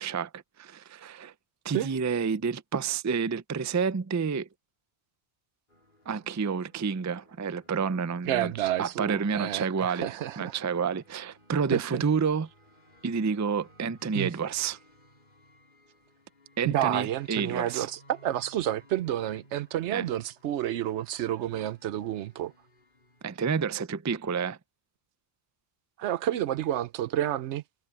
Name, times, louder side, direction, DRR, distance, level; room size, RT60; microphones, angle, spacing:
voice 1, 0.0-1.3 1.6-4.5 6.1-12.5 13.0-14.8 16.6-17.9 19.9-20.0 23.2-24.6, right 6 dB, 30° right, 0.3 m, -29 dB
sound 1, 5.7-23.4, left 1 dB, 45° left, 4.7 m, -60 dB
voice 2, 8.3-10.6 11.7-12.0 14.1-14.3 16.6-22.5 26.0-27.6, right 12 dB, 85° right, 0.9 m, -30 dB
omnidirectional pair, 1.1 m